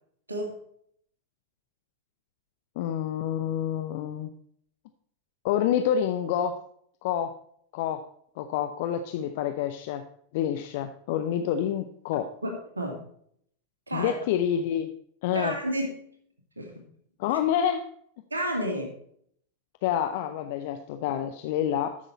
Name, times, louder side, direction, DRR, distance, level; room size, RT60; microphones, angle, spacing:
voice 1, 0.3-0.6 12.4-13.0 13.9-14.1 15.3-16.1 16.6-16.8 18.3-19.0, equal, 80° right, 4 dB, 2.2 m, -31 dB
voice 2, 2.8-4.3 5.4-6.6 7.0-7.4 7.7-8.1 8.4-10.0 10.3-12.3 13.9-14.9 15.2-15.6 17.2-17.9 19.8-22.0, left 9 dB, 50° left, 8 dB, 0.7 m, -28 dB
13.5 x 6.4 x 4.2 m, 0.65 s
figure-of-eight pair, 90°, 0 cm